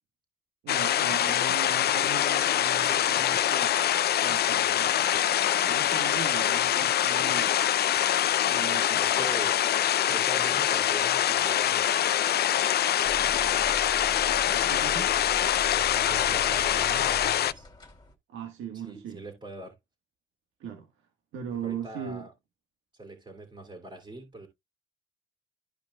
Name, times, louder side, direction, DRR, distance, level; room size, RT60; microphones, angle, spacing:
voice 1, 0.6-3.8 4.1-5.0 5.6-7.5 8.5-9.0 14.5-15.1 18.3-19.2 20.6-20.9 21.3-22.3, right 6 dB, 75° right, 1.5 m, -39 dB
sound 1, 0.7-17.5, left 11 dB, 55° left, 0.5 m, -24 dB
voice 2, 9.0-9.6 10.1-11.8 16.0-17.7 18.7-19.7 21.6-22.3 22.9-24.5, right 2 dB, 25° right, 2.7 m, -42 dB
sound 2, 13.0-18.1, equal, 20° left, 2.4 m, -41 dB
13.5 x 5.0 x 2.3 m
cardioid pair, 90°, 20 cm